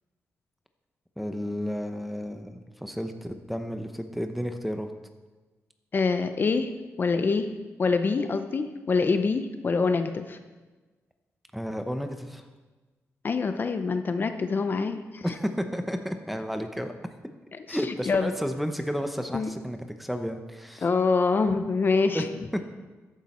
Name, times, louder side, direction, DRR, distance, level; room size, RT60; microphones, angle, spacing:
voice 1, 1.2-4.9 11.5-12.4 15.2-16.9 17.7-20.8 22.1-22.2 22.5-22.6, equal, ahead, 7 dB, 0.8 m, -32 dB
voice 2, 5.9-6.7 7.0-7.5 7.8-10.4 13.2-15.2 17.5-18.3 19.3-19.5 20.8-22.2, left 4 dB, 40° left, 8 dB, 0.7 m, -25 dB
13.5 x 10.0 x 4.4 m, 1.3 s
wide cardioid pair, 140°, 5 cm